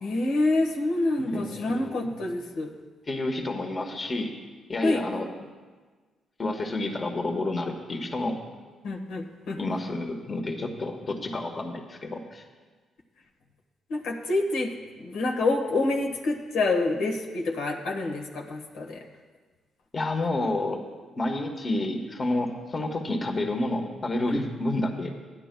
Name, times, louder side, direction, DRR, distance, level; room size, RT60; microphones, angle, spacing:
voice 1, 0.0-2.7 4.8-5.0 8.8-9.6 13.9-14.7 15.0-19.0 24.3-24.4, left 2 dB, 85° left, 1 dB, 1.3 m, -27 dB
voice 2, 1.2-2.1 3.1-4.3 4.7-5.3 6.4-8.4 9.6-12.4 19.9-20.8 21.2-25.1, left 2 dB, 35° left, 3 dB, 1.2 m, -29 dB
16.0 x 10.5 x 2.2 m, 1.4 s
cardioid pair, 90°, 0 cm